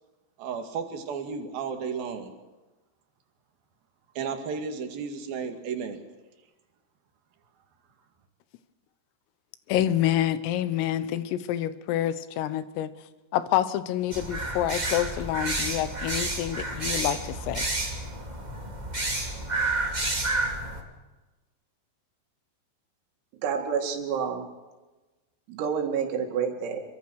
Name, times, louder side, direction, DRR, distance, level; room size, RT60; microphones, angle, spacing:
voice 1, 0.4-2.3 4.1-6.0, right 6 dB, 55° right, 5 dB, 3.4 m, -33 dB
voice 2, 9.7-12.9 13.3-17.7, left 12 dB, 85° left, 13 dB, 3.7 m, -27 dB
sound 1, 14.1-20.8, right 2 dB, 20° right, 1.2 m, -30 dB
voice 3, 23.4-24.5 25.5-26.8, right 6 dB, 90° right, 3 dB, 5.0 m, -28 dB
26.0 x 23.0 x 6.4 m, 1.2 s
omnidirectional pair, 5.9 m